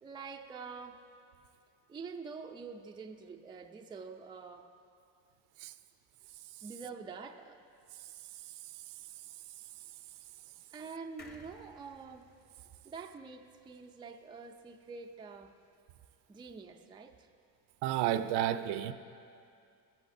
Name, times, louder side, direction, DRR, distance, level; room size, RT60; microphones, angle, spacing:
voice 1, 0.0-1.0 1.9-4.7 6.6-7.6 10.7-12.3 12.8-15.5 16.3-17.3, right 5 dB, 10° right, 4 dB, 0.4 m, -46 dB
voice 2, 7.9-9.4 17.8-18.9, right 11 dB, 65° right, 12 dB, 0.6 m, -34 dB
sound 1, 11.2-14.7 15.0-15.1 15.3-15.4, left 2 dB, 25° left, 1.0 m, -59 dB
16.5 x 13.5 x 2.6 m, 2.5 s
cardioid pair, 120°, 44 cm